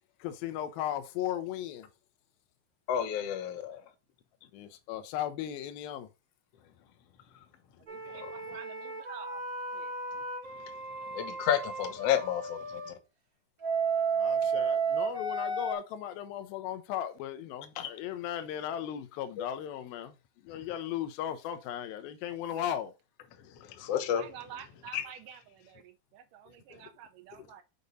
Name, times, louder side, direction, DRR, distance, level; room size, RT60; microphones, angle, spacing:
voice 1, 0.2-1.9 4.5-6.1 14.1-20.2 20.4-22.9, left 10 dB, 85° left, 2.6 m, -36 dB
voice 2, 2.9-3.8 7.3-7.4 8.0-8.3 10.5-10.7 11.0-13.0 17.7-17.9 19.4-19.5 20.5-20.7 23.3-24.2 24.9-25.1 26.7-26.8 27.3-27.5, left 10 dB, 65° left, 1.6 m, -32 dB
voice 3, 7.8-9.4 9.7-9.9 24.1-27.6, right 9 dB, 75° right, 2.1 m, -49 dB
sound 1, 7.9-12.9 13.6-15.7, right 5 dB, 40° right, 1.3 m, -33 dB
6.9 x 5.2 x 4.0 m
omnidirectional pair, 4.2 m